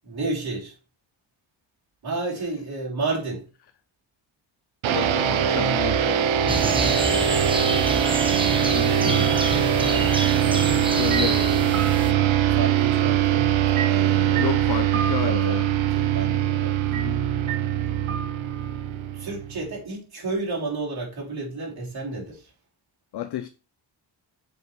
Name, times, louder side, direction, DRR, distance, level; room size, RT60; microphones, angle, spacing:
voice 1, 0.0-0.7 2.0-3.4 5.1-5.6 6.5-8.0 8.8-9.6 9.9-10.2 10.5-10.8 12.4-13.5 13.9-14.5 15.2-15.6 15.9-16.8 19.1-22.5, right 3 dB, 50° right, 3.1 m, -32 dB
sound 1, 4.8-19.7, right 10 dB, 70° right, 0.7 m, -22 dB
voice 2, 4.9-6.3 8.6-9.0 10.9-11.4 14.4-15.7 16.9-17.2 23.1-23.5, left 12 dB, 55° left, 0.5 m, -31 dB
sound 2, 6.5-12.1, right 2 dB, 10° right, 0.7 m, -28 dB
sound 3, 11.1-13.0 13.7-15.8 16.9-17.1 17.5-18.8, right 7 dB, 90° right, 1.1 m, -35 dB
7.5 x 5.0 x 3.1 m
wide cardioid pair, 110°, 48 cm